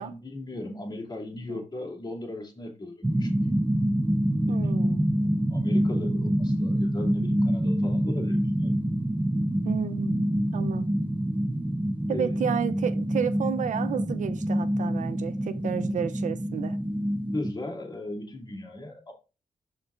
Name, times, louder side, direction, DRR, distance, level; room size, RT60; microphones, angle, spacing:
voice 1, 0.0-3.3 4.5-4.7 5.5-8.7 12.1-12.4 17.3-19.1, left 1 dB, 30° left, 2.7 m, -37 dB
sound 1, 3.0-17.5, equal, 10° right, 0.6 m, -26 dB
voice 2, 4.5-5.1 9.6-10.9 12.1-16.8, right 8 dB, 70° right, 0.5 m, -31 dB
13.0 x 4.5 x 2.4 m
cardioid pair, 85°, 13 cm